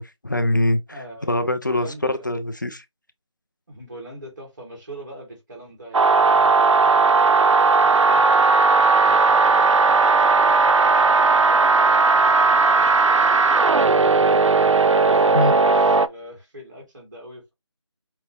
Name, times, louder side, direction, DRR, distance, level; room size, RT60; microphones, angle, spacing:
voice 1, 0.0-0.8 1.3-2.8 15.3-15.5, left 1 dB, 40° left, 0.5 m, -23 dB
voice 2, 0.9-1.3 1.7-2.3 3.7-8.1 8.7-14.4 15.0-17.5, right 1 dB, 40° right, 2.2 m, -42 dB
sound 1, 5.9-16.1, right 4 dB, 80° right, 0.5 m, -16 dB
5.4 x 2.9 x 2.7 m
figure-of-eight pair, 175°, 16 cm